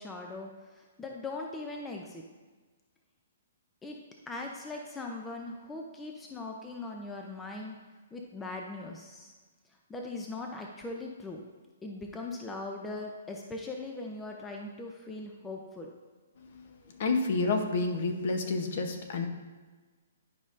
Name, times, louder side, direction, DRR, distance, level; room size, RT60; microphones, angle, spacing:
voice 1, 0.0-2.2 3.8-4.0 4.3-7.8 8.1-9.3 9.9-11.4 11.8-15.9, left 2 dB, 10° left, 1 dB, 0.4 m, -40 dB
voice 2, 17.0-19.3, left 3 dB, 50° left, 5 dB, 0.8 m, -29 dB
10.5 x 5.2 x 2.5 m, 1.3 s
hypercardioid pair, 165°, 0 cm